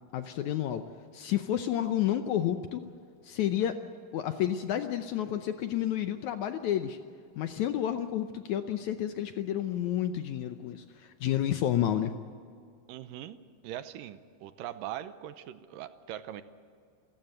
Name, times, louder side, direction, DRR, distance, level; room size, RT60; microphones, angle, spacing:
voice 1, 0.1-0.9 1.1-2.8 3.2-3.8 4.1-7.0 7.4-12.1, left 11 dB, 75° left, 8 dB, 1.8 m, -30 dB
voice 2, 12.9-13.4 13.6-16.4, right 12 dB, 80° right, 12 dB, 2.4 m, -41 dB
28.0 x 14.5 x 7.9 m, 2.3 s
omnidirectional pair, 4.1 m